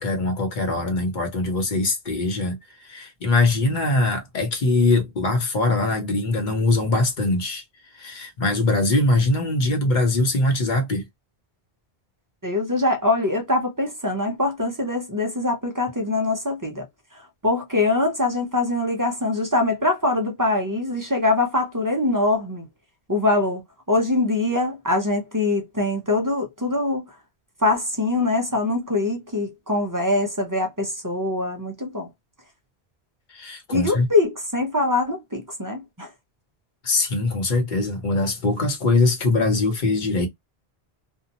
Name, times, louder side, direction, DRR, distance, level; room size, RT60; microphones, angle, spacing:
voice 1, 0.0-2.6 2.9-7.6 8.0-11.0 33.3-34.1 36.8-40.3, left 2 dB, 50° left, 0.9 m, -22 dB
voice 2, 12.4-16.9 17.1-22.7 23.1-23.6 23.9-27.1 27.6-32.1 33.7-36.1, left 2 dB, 25° right, 0.5 m, -23 dB
2.7 x 2.1 x 2.8 m
omnidirectional pair, 1.1 m